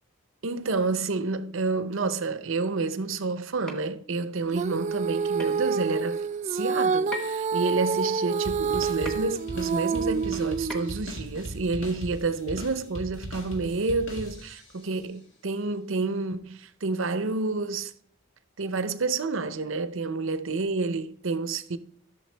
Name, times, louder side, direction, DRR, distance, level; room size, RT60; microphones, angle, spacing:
voice 1, 0.4-17.9 18.6-21.8, right 3 dB, 65° right, 0.7 m, -29 dB
sound 1, 3.7-3.9 5.4-5.6 7.1-7.5 9.0-9.3 10.7-11.1, left 2 dB, 5° left, 1.3 m, -37 dB
Female singing, 4.5-11.0, right 5 dB, 35° right, 0.3 m, -28 dB
sound 2, 8.4-14.8, right 1 dB, 60° left, 2.2 m, -39 dB
12.5 x 6.8 x 3.4 m
head